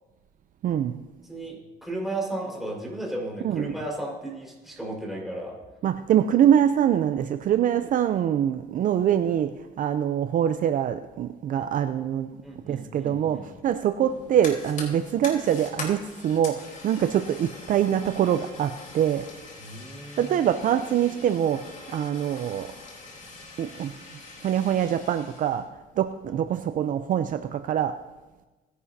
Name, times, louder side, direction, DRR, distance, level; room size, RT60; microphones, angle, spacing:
voice 1, 0.6-1.0 3.4-3.7 5.8-12.4 12.7-19.3 20.2-22.7 23.6-23.9 24.4-25.7 26.0-28.0, right 10 dB, 50° right, 0.5 m, -24 dB
voice 2, 1.3-5.6 12.4-13.5 19.6-20.4, right 1 dB, ahead, 4.7 m, -34 dB
Fire, 14.0-25.6, left 3 dB, 50° left, 4.0 m, -43 dB
19.5 x 11.0 x 2.8 m
cardioid pair, 110°, 17 cm